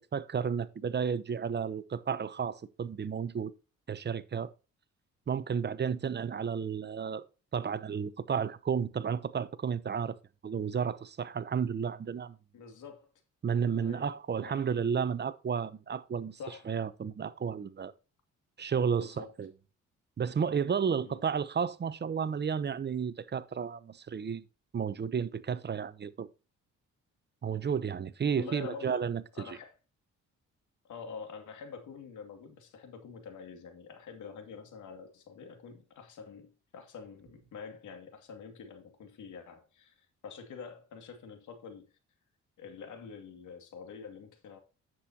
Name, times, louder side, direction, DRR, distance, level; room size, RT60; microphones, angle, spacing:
voice 1, 0.1-3.5 3.9-4.5 5.3-7.2 7.5-10.2 10.4-12.4 13.4-16.4 16.7-17.9 18.6-19.5 20.2-24.4 24.7-26.3 27.4-29.6, right 7 dB, 35° right, 0.8 m, -32 dB
voice 2, 12.5-13.1 13.8-14.1 14.4-14.6 16.4-16.7 19.0-19.3 21.0-21.2 28.4-29.0 29.3-29.7 30.8-41.9 42.6-44.6, left 6 dB, 75° left, 2.4 m, -46 dB
10.0 x 7.8 x 2.8 m
cardioid pair, 90°, 30 cm